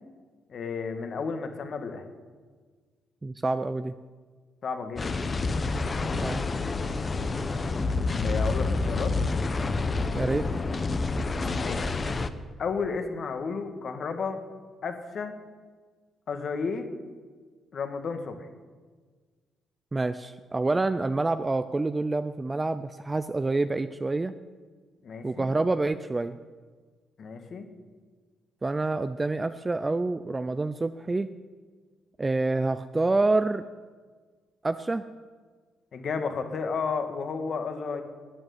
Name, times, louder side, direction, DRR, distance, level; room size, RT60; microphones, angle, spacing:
voice 1, 0.5-2.0 4.6-5.1 8.2-9.1 11.6-12.0 12.6-14.4 14.8-15.3 16.3-16.9 17.7-18.5 25.0-25.5 27.2-27.7 35.9-38.0, left 5 dB, 55° left, 6 dB, 1.8 m, -32 dB
voice 2, 3.2-3.9 6.1-6.5 10.1-10.4 19.9-24.3 25.2-26.4 28.6-31.3 32.2-33.6 34.6-35.0, right 2 dB, 20° right, 11 dB, 0.5 m, -27 dB
sound 1, 5.0-12.3, left 3 dB, 35° left, 0.9 m, -28 dB
12.5 x 9.1 x 9.5 m, 1.5 s
cardioid pair, 90°, 0 cm